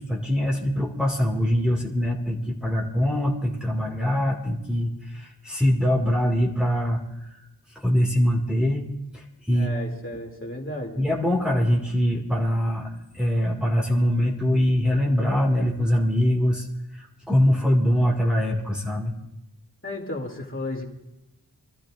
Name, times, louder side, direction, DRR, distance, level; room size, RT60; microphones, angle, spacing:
voice 1, 0.0-7.0 7.3-7.4 7.8-8.9 9.1-9.7 11.0-16.7 16.9-19.1, equal, ahead, -3 dB, 2.1 m, -23 dB
voice 2, 9.5-11.0 19.8-20.9, left 1 dB, 30° left, -1 dB, 2.8 m, -33 dB
26.5 x 13.5 x 2.5 m, 0.94 s
wide cardioid pair, 75°, 41 cm